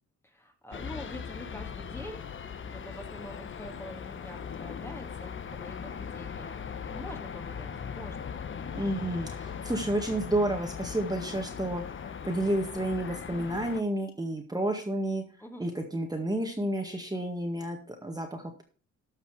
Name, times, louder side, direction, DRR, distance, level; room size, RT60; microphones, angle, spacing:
voice 1, 0.2-2.2 2.6-8.3 15.4-15.6, left 1 dB, 10° left, 4 dB, 2.1 m, -45 dB
sound 1, 0.7-13.8, left 7 dB, 40° left, 1.1 m, -39 dB
voice 2, 8.7-11.8 12.2-15.2 15.6-18.6, right 1 dB, 15° right, 3 dB, 1.9 m, -30 dB
13.5 x 5.8 x 4.9 m, 0.37 s
cardioid pair, 90°, 30 cm